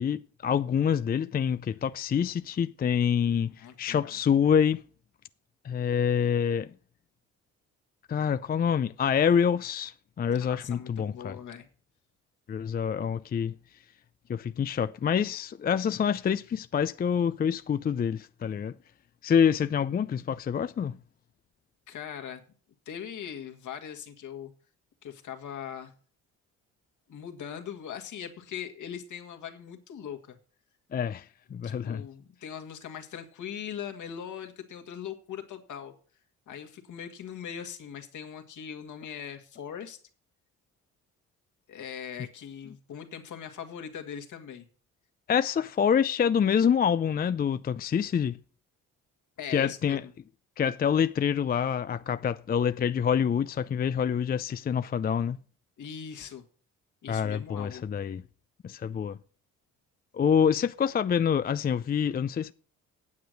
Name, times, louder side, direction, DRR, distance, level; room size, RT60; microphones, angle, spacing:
voice 1, 0.0-4.8 5.6-6.7 8.1-11.4 12.5-13.5 14.3-18.7 19.2-21.0 30.9-31.3 31.5-32.0 45.3-48.4 49.5-50.0 50.6-55.4 57.1-58.2 58.6-59.2 60.1-62.5, left 7 dB, 30° left, 0.4 m, -26 dB
voice 2, 3.5-4.1 10.4-11.7 21.9-22.4 22.9-24.5 25.0-25.9 27.1-30.4 31.6-35.9 36.5-40.0 41.7-44.7 45.6-45.7 49.4-50.1 55.8-56.4 57.0-57.9, left 8 dB, 65° left, 1.9 m, -40 dB
9.4 x 7.8 x 6.5 m
supercardioid pair, 65°, 32 cm